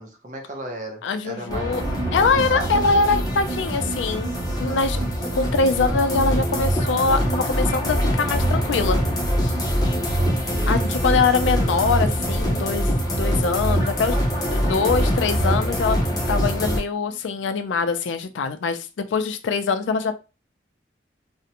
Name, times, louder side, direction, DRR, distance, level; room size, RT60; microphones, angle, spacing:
voice 1, 0.0-1.7 2.2-2.8 10.2-10.9, right 2 dB, 45° right, 2 dB, 0.7 m, -35 dB
voice 2, 1.0-1.8 2.1-4.3 4.6-5.0 5.3-9.0 10.7-14.2 14.5-16.0 16.3-20.2, left 4 dB, 90° left, 9 dB, 0.4 m, -23 dB
sound 1, 1.5-16.8, equal, 20° left, 0.6 m, -23 dB
sound 2, 1.8-17.2 17.4-17.5 17.9-18.0, right 3 dB, 85° right, 0.4 m, -37 dB
2.5 x 2.1 x 2.8 m, 0.31 s
head